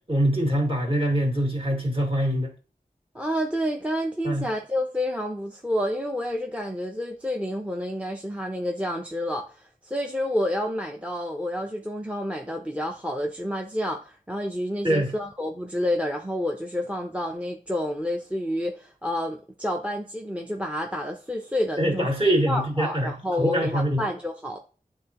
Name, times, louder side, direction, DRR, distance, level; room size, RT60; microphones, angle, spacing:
voice 1, 0.1-2.5 4.2-4.5 14.8-15.1 21.8-24.0, right 1 dB, 35° right, 0 dB, 2.1 m, -24 dB
voice 2, 3.1-22.1 22.5-24.6, left 1 dB, 10° right, 3 dB, 0.7 m, -29 dB
9.9 x 3.8 x 2.9 m, 0.37 s
wide cardioid pair, 65°, 16 cm